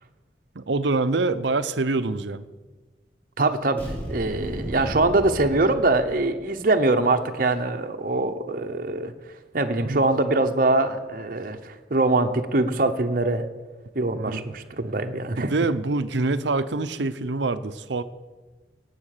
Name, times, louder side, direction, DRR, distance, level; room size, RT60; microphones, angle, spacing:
voice 1, 0.5-2.5 9.8-10.0 14.2-14.4 15.4-18.0, right 3 dB, 75° right, 12 dB, 0.7 m, -25 dB
voice 2, 3.4-3.8 4.1-9.1 9.5-13.4 13.9-15.5, right 2 dB, 50° right, 5 dB, 0.9 m, -23 dB
sound 1, 3.8-6.5, equal, 10° left, 4.5 m, -34 dB
18.5 x 8.2 x 6.7 m, 1.3 s
head